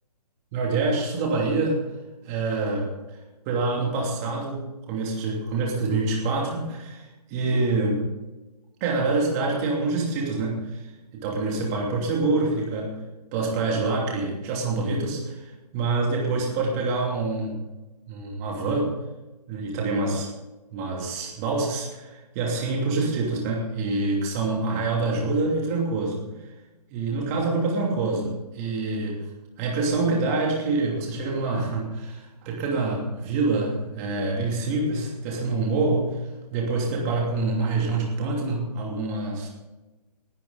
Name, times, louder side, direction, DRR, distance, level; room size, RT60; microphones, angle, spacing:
voice 1, 0.5-1.8 2.3-2.9 3.5-8.0 8.8-10.8 11.1-12.9 13.3-17.6 18.1-18.9 19.5-20.3 20.7-26.2 26.9-29.2 29.6-36.2 36.5-39.5, right 3 dB, 20° right, -1 dB, 2.9 m, -26 dB
18.5 x 12.5 x 4.0 m, 1.1 s
hypercardioid pair, 160°, 21 cm